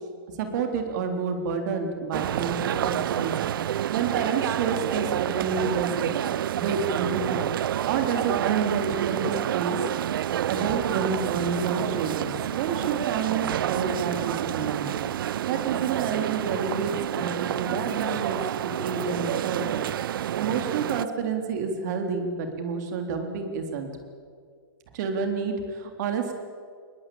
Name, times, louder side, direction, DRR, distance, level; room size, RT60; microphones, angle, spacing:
voice 1, 0.4-7.5 7.9-9.8 10.4-15.0 15.4-19.9 20.4-23.9 24.9-26.4, right 5 dB, 50° right, 5 dB, 3.6 m, -29 dB
sound 1, 2.1-21.0, right 11 dB, 65° right, 0.5 m, -28 dB
21.0 x 20.5 x 8.7 m, 2.1 s
hypercardioid pair, 140°, 12 cm